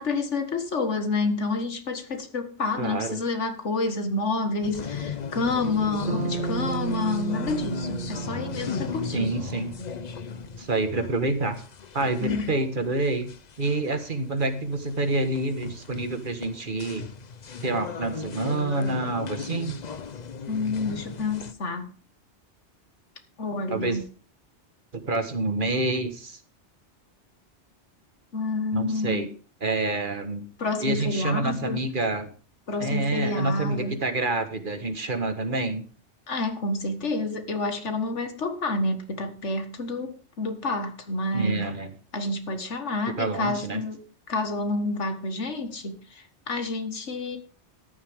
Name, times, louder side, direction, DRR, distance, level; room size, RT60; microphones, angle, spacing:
voice 1, 0.0-9.3 12.2-12.6 20.5-21.9 23.4-24.0 28.3-29.3 30.6-31.8 32.7-34.0 36.3-41.7 42.1-44.0 44.3-47.4, left 3 dB, 90° left, 2.0 m, -29 dB
voice 2, 2.8-3.2 9.1-9.7 10.6-11.6 11.9-13.3 13.6-17.1 17.6-19.8 23.7-24.0 24.9-26.4 28.7-29.3 29.6-30.4 30.8-32.3 32.8-35.8 41.3-41.9 43.2-43.8, right 2 dB, 45° right, 1.6 m, -27 dB
sound 1, 4.6-21.5, left 6 dB, 40° left, 0.8 m, -36 dB
Bass guitar, 6.1-10.4, right 6 dB, 75° right, 1.7 m, -34 dB
14.0 x 10.5 x 3.6 m
omnidirectional pair, 1.2 m